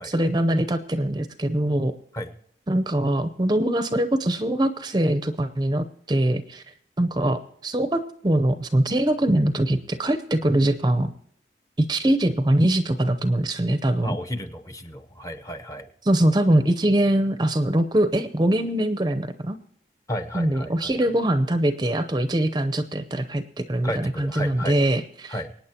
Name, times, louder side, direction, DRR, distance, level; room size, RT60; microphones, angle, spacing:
voice 1, 0.1-1.9 2.7-6.6 7.0-11.1 11.8-14.2 16.0-19.6 20.3-25.4, right 1 dB, 25° right, 9 dB, 0.7 m, -22 dB
voice 2, 14.0-15.9 20.1-20.9 23.8-24.8 25.3-25.5, equal, 20° left, 9 dB, 0.9 m, -33 dB
24.5 x 9.4 x 2.9 m, 0.65 s
head